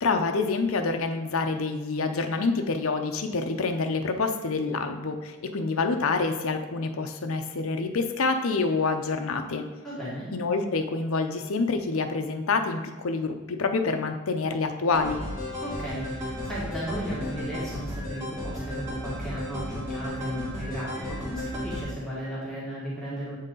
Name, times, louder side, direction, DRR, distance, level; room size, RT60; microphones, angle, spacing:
voice 1, 0.0-9.7 10.3-15.2, left 4 dB, 70° left, 6 dB, 0.6 m, -27 dB
voice 2, 9.8-10.3 15.6-23.4, equal, ahead, -9 dB, 1.7 m, -35 dB
sound 1, 14.9-21.8, left 1 dB, 15° right, 1.6 m, -34 dB
8.1 x 4.1 x 3.8 m, 1.2 s
head